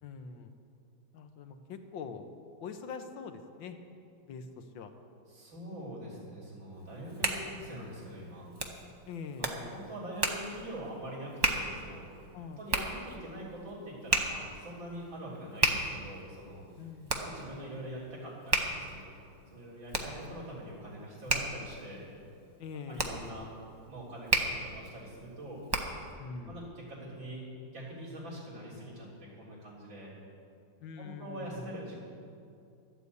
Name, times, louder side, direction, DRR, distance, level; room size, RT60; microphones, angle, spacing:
voice 1, 0.0-0.5 1.1-2.3 2.6-3.8 4.3-4.9 9.1-9.5 12.3-12.6 16.8-17.2 22.6-23.1 26.2-26.6 30.8-31.6, left 5 dB, 85° left, 7 dB, 1.7 m, -43 dB
voice 2, 5.3-8.5 9.4-12.1 12.6-16.7 17.2-19.1 19.5-22.0 22.9-23.5 23.9-25.6 26.5-27.5 27.7-30.1 31.0-31.9, right 1 dB, 85° right, -7 dB, 4.5 m, -43 dB
Hands, 6.8-26.1, right 2 dB, 35° right, 0.4 m, -35 dB
12.5 x 8.2 x 8.3 m, 2.5 s
omnidirectional pair, 2.0 m